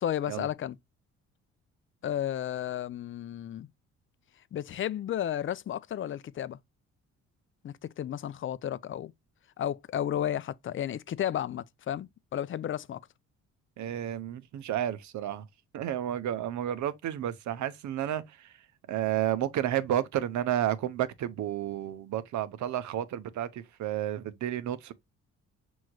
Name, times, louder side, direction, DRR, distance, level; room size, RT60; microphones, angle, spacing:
voice 1, 0.0-0.8 2.0-3.7 4.5-6.6 7.6-9.1 9.6-13.0, left 10 dB, 45° left, 0.5 m, -33 dB
voice 2, 13.8-15.4 15.7-18.5 18.9-24.9, right 11 dB, 70° right, 0.7 m, -31 dB
6.2 x 3.1 x 2.3 m
cardioid pair, 90°, 30 cm